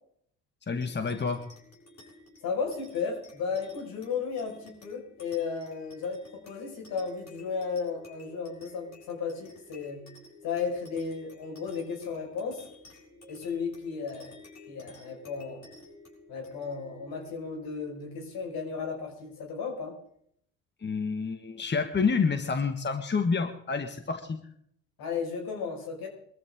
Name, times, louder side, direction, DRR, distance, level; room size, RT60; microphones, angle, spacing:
voice 1, 0.7-1.4 20.8-24.4, left 5 dB, 30° left, 7 dB, 1.7 m, -28 dB
sound 1, 0.8-19.6, left 1 dB, 50° left, 7.5 m, -53 dB
voice 2, 2.4-10.1 10.4-12.6 13.3-14.3 14.7-15.7 16.3-20.0 25.0-26.1, left 5 dB, 70° left, 1 dB, 5.6 m, -34 dB
22.5 x 14.0 x 3.8 m, 0.67 s
supercardioid pair, 65°, 37 cm